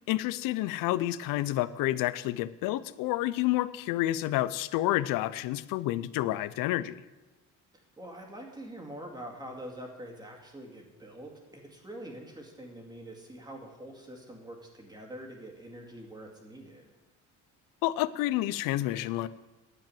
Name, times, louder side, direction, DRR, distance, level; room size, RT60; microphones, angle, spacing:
voice 1, 0.1-7.0 17.8-19.3, left 15 dB, 80° left, 17 dB, 0.6 m, -29 dB
voice 2, 8.0-16.9, right 1 dB, 10° right, 1 dB, 2.1 m, -45 dB
10.5 x 7.5 x 9.2 m, 1.1 s
cardioid pair, 150°, 33 cm